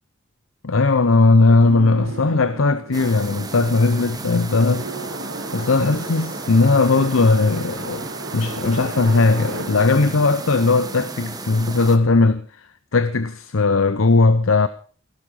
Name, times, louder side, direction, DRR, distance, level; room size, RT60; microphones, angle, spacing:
voice 1, 0.6-4.9 5.5-8.1 8.3-14.7, left 3 dB, 85° left, 0.8 m, -18 dB
sound 1, 1.6-11.6, right 2 dB, 70° right, 1.9 m, -35 dB
sound 2, 2.9-12.0, right 3 dB, 20° right, 1.2 m, -34 dB
17.0 x 11.5 x 5.5 m
head